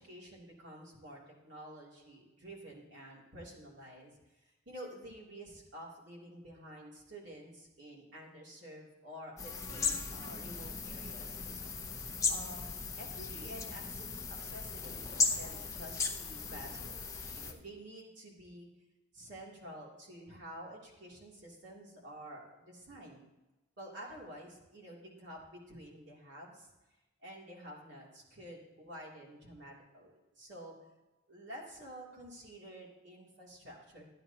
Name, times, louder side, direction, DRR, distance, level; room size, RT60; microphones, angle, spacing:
voice 1, 0.0-11.7 12.3-18.7 19.1-23.2 23.8-26.7 27.2-30.7 31.3-34.1, equal, 70° right, -4 dB, 3.0 m, -50 dB
sound 1, 9.4-17.5, left 4 dB, 15° left, 0.8 m, -37 dB
14.0 x 9.8 x 2.9 m, 1.1 s
head